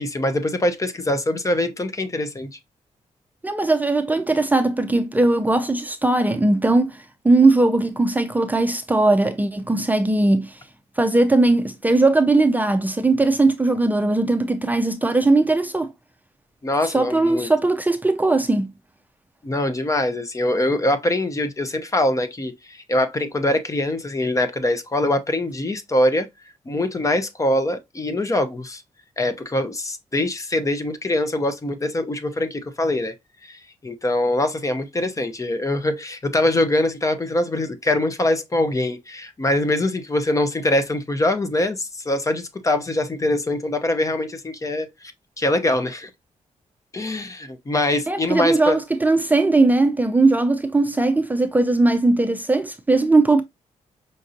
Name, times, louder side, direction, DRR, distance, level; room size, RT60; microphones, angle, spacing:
voice 1, 0.0-2.5 16.6-17.5 19.4-26.3 26.7-28.8 29.2-33.2 33.4-45.1 45.4-46.1 46.9-48.8, left 1 dB, 25° left, 0.6 m, -23 dB
voice 2, 3.4-10.6 11.0-15.9 16.8-18.7 48.1-53.4, right 2 dB, 15° right, 0.5 m, -19 dB
5.2 x 2.6 x 2.4 m
cardioid pair, 110°, 12 cm